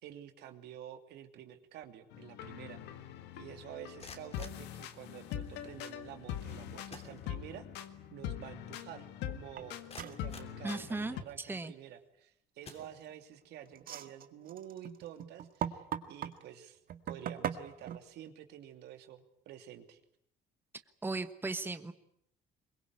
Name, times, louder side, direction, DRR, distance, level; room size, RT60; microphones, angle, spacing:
voice 1, 0.0-2.8 3.4-16.8 17.1-20.0, right 11 dB, 80° right, 7 dB, 2.7 m, -49 dB
sound 1, 2.1-11.2, left 10 dB, 85° left, 1.9 m, -43 dB
sound 2, 3.8-5.5 6.5-6.6 6.9-7.8 8.1-8.2 8.8-8.9 9.4-11.3 11.9-12.2 12.6-13.4, left 4 dB, 35° left, 3.2 m, -54 dB
sound 3, 9.6-9.7 10.0-10.2 12.7-13.1 13.7-16.4 16.9-18.0, right 9 dB, 60° right, 1.8 m, -39 dB
voice 2, 10.6-11.7 21.0-21.9, right 3 dB, 10° right, 10 dB, 1.3 m, -37 dB
23.0 x 21.5 x 9.8 m, 0.73 s
cardioid pair, 110°, 17 cm